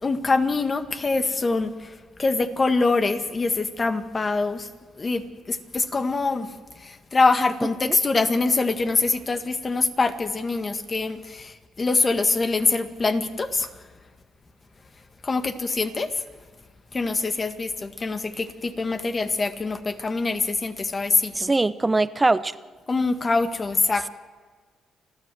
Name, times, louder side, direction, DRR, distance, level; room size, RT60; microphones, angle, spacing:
voice 1, 0.0-4.7 5.0-13.7 15.2-16.2 16.9-21.5 22.9-24.1, left 3 dB, 30° left, 10 dB, 1.7 m, -24 dB
voice 2, 21.3-22.5, right 2 dB, 20° right, 15 dB, 0.8 m, -22 dB
29.5 x 12.5 x 7.8 m, 1.5 s
cardioid pair, 90°, 0 cm